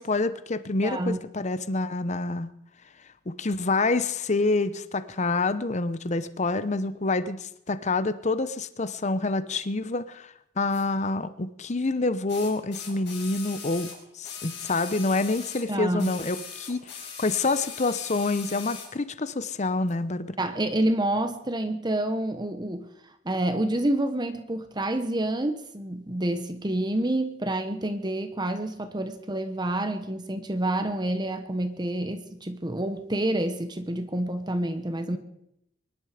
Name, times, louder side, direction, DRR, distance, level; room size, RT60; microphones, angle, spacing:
voice 1, 0.0-2.5 3.3-13.9 14.2-16.9 17.2-20.3, left 3 dB, 40° left, 13 dB, 0.8 m, -27 dB
voice 2, 0.8-1.2 15.7-16.1 20.4-22.9 23.2-35.2, right 1 dB, 25° right, 9 dB, 1.1 m, -28 dB
sound 1, 10.7-10.8 12.3-15.7 16.0-18.9 19.9-20.0, left 6 dB, 65° left, 5.4 m, -40 dB
24.0 x 11.5 x 5.0 m, 0.78 s
head